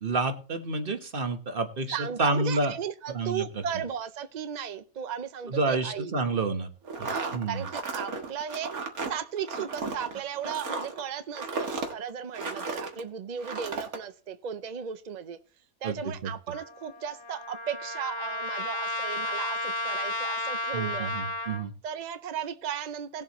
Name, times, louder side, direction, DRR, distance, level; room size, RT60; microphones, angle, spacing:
voice 1, 0.0-2.7 3.1-3.4 5.5-6.7 7.0-7.6 15.8-16.3 20.7-21.7, right 3 dB, 40° right, 7 dB, 1.2 m, -29 dB
voice 2, 1.9-6.1 7.1-8.7 9.1-15.4 15.8-21.1 21.8-23.2, right 8 dB, 55° right, 11 dB, 0.4 m, -36 dB
sound 1, 6.8-13.0 13.4-14.0, right 4 dB, 90° right, 2.0 m, -34 dB
Trumpet, 16.5-21.6, left 2 dB, 45° left, 1.4 m, -33 dB
18.5 x 7.4 x 3.0 m, 0.38 s
omnidirectional pair, 1.5 m